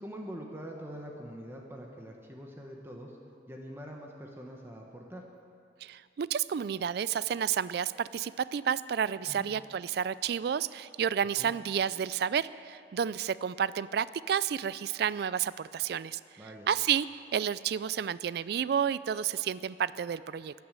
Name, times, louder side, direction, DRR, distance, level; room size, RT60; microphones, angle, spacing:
voice 1, 0.0-3.2 3.5-5.2 9.3-9.5 11.4-11.5 16.4-16.7, equal, 15° right, 0 dB, 1.3 m, -44 dB
voice 2, 5.8-16.2 16.7-20.5, right 8 dB, 60° right, 17 dB, 0.3 m, -31 dB
14.0 x 9.5 x 8.8 m, 2.5 s
head